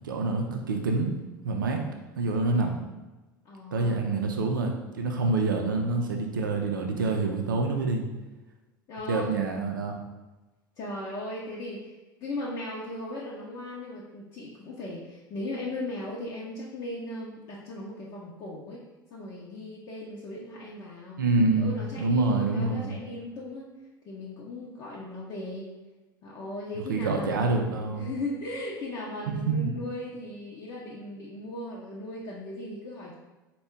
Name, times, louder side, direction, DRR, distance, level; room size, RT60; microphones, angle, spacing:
voice 1, 0.0-1.1 1.4-1.8 2.2-2.7 3.7-8.0 9.1-10.0 21.2-23.0 26.9-28.1 29.3-29.7, right 3 dB, 70° right, 2 dB, 0.5 m, -26 dB
voice 2, 3.4-4.0 8.9-9.5 10.8-11.9 12.2-18.8 19.1-21.2 21.5-23.7 24.0-25.7 26.2-27.6 28.0-33.1, left 1 dB, 40° left, -5 dB, 0.6 m, -37 dB
4.3 x 2.2 x 3.5 m, 1.1 s
figure-of-eight pair, 75°, 11 cm